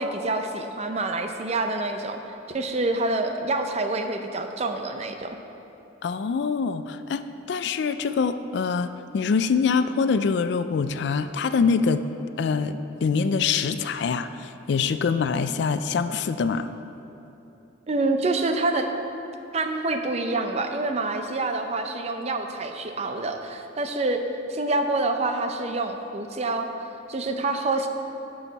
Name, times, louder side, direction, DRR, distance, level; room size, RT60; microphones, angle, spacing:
voice 1, 0.0-5.4 17.9-18.9 19.5-24.2 24.5-26.7 27.1-27.9, right 2 dB, 35° right, 6 dB, 0.5 m, -27 dB
voice 2, 6.0-7.2 7.5-12.0 12.4-16.7, left 5 dB, 60° left, 11 dB, 0.3 m, -24 dB
11.0 x 6.4 x 4.0 m, 3.0 s
head